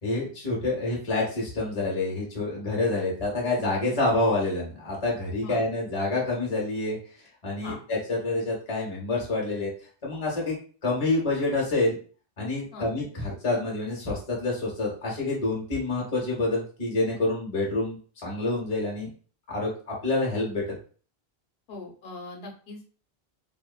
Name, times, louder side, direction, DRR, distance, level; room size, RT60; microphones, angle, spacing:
voice 1, 0.0-7.0 7.4-9.7 10.0-10.6 10.8-12.0 12.4-19.1 19.5-20.8, left 2 dB, 40° left, -3 dB, 0.8 m, -27 dB
voice 2, 21.7-22.8, left 2 dB, 80° left, 1 dB, 0.9 m, -40 dB
2.9 x 2.0 x 2.2 m, 0.41 s
omnidirectional pair, 1.0 m